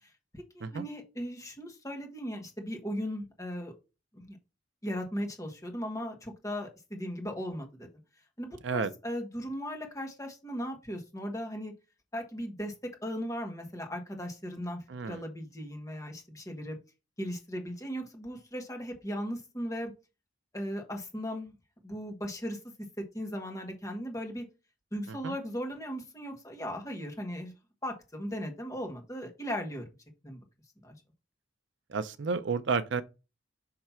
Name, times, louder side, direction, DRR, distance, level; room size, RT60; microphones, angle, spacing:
voice 1, 0.0-3.7 4.1-4.4 4.8-7.9 8.4-11.7 12.1-14.8 15.0-16.8 17.2-19.9 20.5-21.5 21.8-22.6 23.1-24.4 24.9-27.5 27.8-29.8 30.2-30.4 30.8-30.9, equal, 15° left, 1.5 m, -37 dB
voice 2, 14.9-15.2 25.1-25.4 31.9-33.0, right 5 dB, 70° right, 0.5 m, -31 dB
5.8 x 3.2 x 5.7 m
head